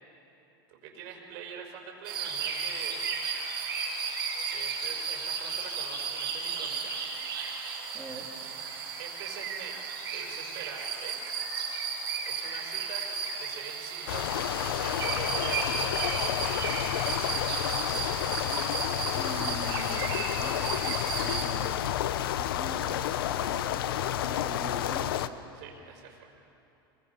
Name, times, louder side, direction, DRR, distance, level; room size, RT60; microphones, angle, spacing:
voice 1, 0.7-3.0 4.5-7.0 9.0-11.2 12.2-17.1 25.5-26.3, right 7 dB, 60° right, 1 dB, 4.9 m, -44 dB
sound 1, 2.1-21.4, right 5 dB, 85° right, 5.1 m, -34 dB
voice 2, 7.9-8.3 19.1-20.7 21.2-21.9 22.4-25.1, right 3 dB, 15° right, -1 dB, 3.8 m, -43 dB
sound 2, 14.1-25.3, left 11 dB, 75° left, 0.8 m, -30 dB
25.5 x 21.5 x 5.7 m, 2.9 s
hypercardioid pair, 115°, 12 cm